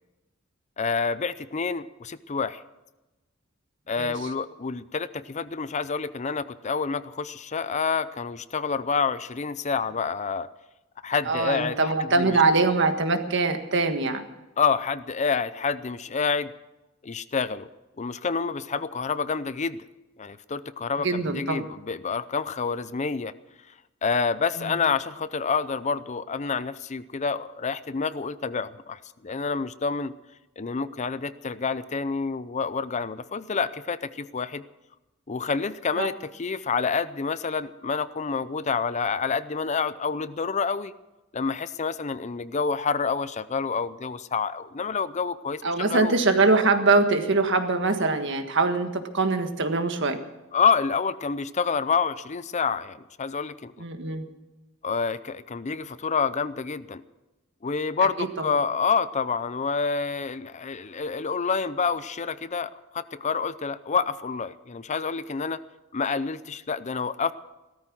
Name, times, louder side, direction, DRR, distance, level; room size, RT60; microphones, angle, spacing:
voice 1, 0.8-2.6 3.9-10.5 11.0-12.4 14.6-16.5 17.0-17.7 18.0-19.8 20.2-23.3 24.0-30.1 30.6-34.6 35.3-40.9 41.3-46.2 50.5-53.7 54.8-57.0 57.6-65.6 65.9-67.3, left 5 dB, 35° left, 15 dB, 0.5 m, -28 dB
voice 2, 11.3-14.2 21.0-21.6 36.0-36.1 45.6-50.2 53.8-54.2 58.2-58.3, right 3 dB, 60° right, 7 dB, 1.6 m, -23 dB
17.5 x 13.5 x 6.1 m, 1.0 s
head